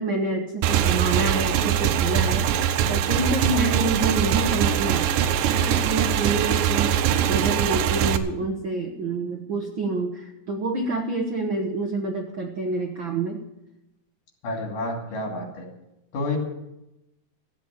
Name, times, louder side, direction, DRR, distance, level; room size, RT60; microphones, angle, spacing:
voice 1, 0.0-13.4, right 3 dB, 65° right, 3 dB, 1.2 m, -28 dB
Motorcycle / Engine, 0.6-8.2, right 9 dB, 90° right, 2.5 m, -22 dB
voice 2, 14.4-15.7 16.1-16.4, left 2 dB, 75° left, 1 dB, 4.4 m, -29 dB
14.5 x 8.2 x 8.7 m, 0.90 s
omnidirectional pair, 3.8 m